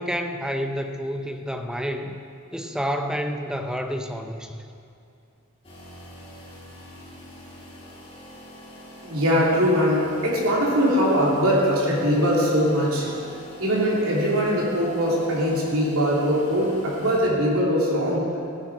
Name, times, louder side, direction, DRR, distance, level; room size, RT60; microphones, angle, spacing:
voice 1, 0.0-2.2 2.5-4.5, equal, 5° right, 5 dB, 0.7 m, -29 dB
sound 1, 5.6-17.2, left 1 dB, 25° left, 3.1 m, -43 dB
voice 2, 9.0-13.1 13.6-18.3, equal, 75° right, -5 dB, 3.1 m, -21 dB
15.0 x 9.1 x 4.9 m, 2.6 s
head